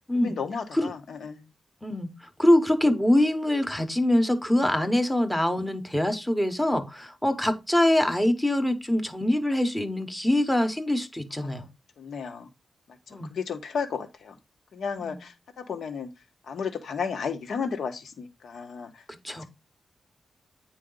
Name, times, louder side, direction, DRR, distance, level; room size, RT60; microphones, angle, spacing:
voice 1, 0.1-1.5 4.6-4.7 11.4-11.7 12.0-12.5 12.9-13.0 13.3-14.3 14.7-16.1 16.5-19.4, left 6 dB, 75° left, 1.3 m, -34 dB
voice 2, 1.8-11.7 13.1-13.3 15.0-15.2 19.1-19.4, left 1 dB, 5° left, 1.0 m, -24 dB
9.2 x 4.7 x 3.9 m
wide cardioid pair, 180°, 0 cm